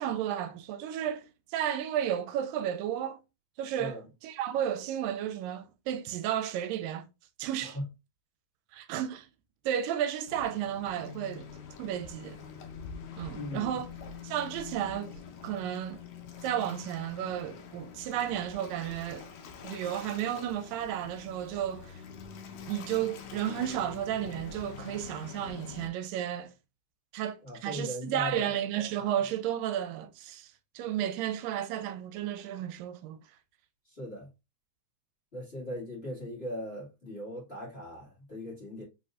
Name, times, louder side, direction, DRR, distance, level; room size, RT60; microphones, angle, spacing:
voice 1, 0.0-3.2 3.6-7.1 7.4-7.8 8.7-9.3 9.6-11.5 11.8-12.4 13.2-13.9 14.2-16.0 16.4-19.3 19.6-22.0 22.7-26.5 27.1-33.2, right 10 dB, 85° right, 2.2 m, -33 dB
Waves surf, 10.3-25.9, left 6 dB, 70° left, 1.9 m, -45 dB
voice 2, 13.3-13.8 27.4-28.5 29.0-29.2 33.8-34.3 35.3-38.8, left 1 dB, 25° left, 1.6 m, -39 dB
5.2 x 4.2 x 2.4 m
omnidirectional pair, 3.9 m